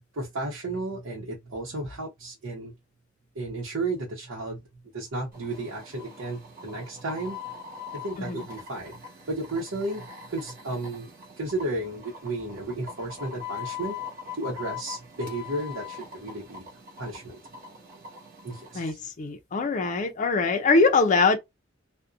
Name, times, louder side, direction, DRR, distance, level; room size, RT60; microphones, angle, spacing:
voice 1, 0.1-2.7 3.3-4.6 4.9-7.4 7.9-9.0 9.3-11.1 11.4-13.9 14.4-16.7 17.0-17.4 18.4-19.0, right 2 dB, 85° right, 0.8 m, -33 dB
sound 1, 5.3-18.9, left 6 dB, 45° right, 1.2 m, -42 dB
voice 2, 18.7-21.4, left 3 dB, 40° left, 0.4 m, -23 dB
2.6 x 2.1 x 2.4 m
head